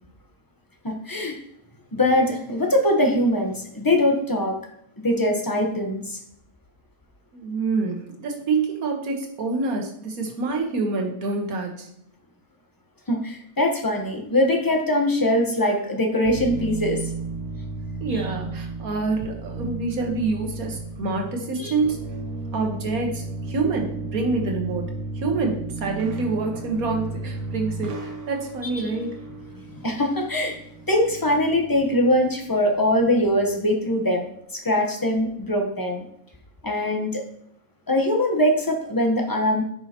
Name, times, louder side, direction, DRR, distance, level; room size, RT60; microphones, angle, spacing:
voice 1, 0.8-1.4 1.9-4.6 5.0-6.2 13.1-17.0 21.6-21.7 28.8-28.9 29.7-30.6 30.9-36.0 36.6-37.2 37.9-39.6, left 1 dB, 15° left, 2 dB, 0.9 m, -22 dB
voice 2, 7.3-11.9 18.0-22.0 22.5-29.1, right 3 dB, 80° right, 2 dB, 1.7 m, -27 dB
sound 1, 16.2-33.6, right 3 dB, 60° right, 1.1 m, -34 dB
10.0 x 5.6 x 2.9 m, 0.73 s
omnidirectional pair, 1.5 m